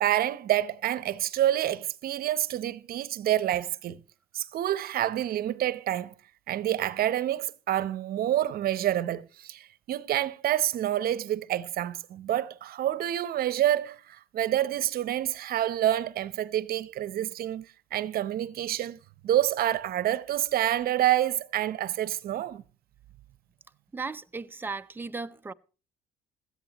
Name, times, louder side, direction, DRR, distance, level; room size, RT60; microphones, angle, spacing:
voice 1, 0.0-4.0 4.3-6.1 6.5-19.0 19.2-22.6, right 12 dB, 60° right, 0.8 m, -28 dB
voice 2, 23.9-25.5, right 4 dB, 10° right, 0.6 m, -36 dB
17.0 x 13.5 x 3.0 m
cardioid pair, 110°, 17 cm